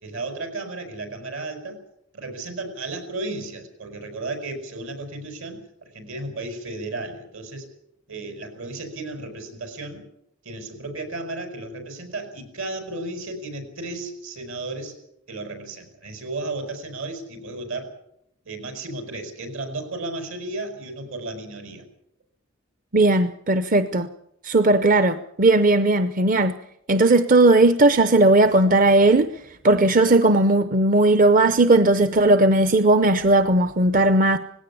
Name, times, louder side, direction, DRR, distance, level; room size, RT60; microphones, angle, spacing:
voice 1, 0.0-1.8 2.1-7.6 8.1-10.1 10.4-14.9 15.3-17.9 18.4-21.8, right 2 dB, 75° right, 5.1 m, -34 dB
voice 2, 22.9-24.1 24.4-26.5 26.9-29.3 29.6-34.4, right 2 dB, 40° right, 0.7 m, -17 dB
19.0 x 16.5 x 8.4 m
head